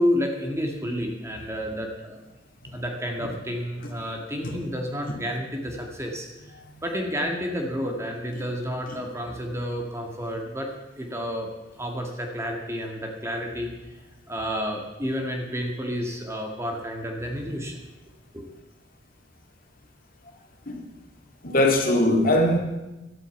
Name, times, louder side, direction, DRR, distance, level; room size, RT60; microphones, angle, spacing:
voice 1, 0.0-2.2 2.7-6.5 6.8-10.7 11.0-11.5 11.8-14.0 14.3-17.8 18.3-18.4, equal, 15° right, 1 dB, 2.0 m, -30 dB
voice 2, 21.4-22.6, left 1 dB, 50° left, 1 dB, 2.5 m, -20 dB
12.5 x 8.9 x 8.6 m, 1.0 s
head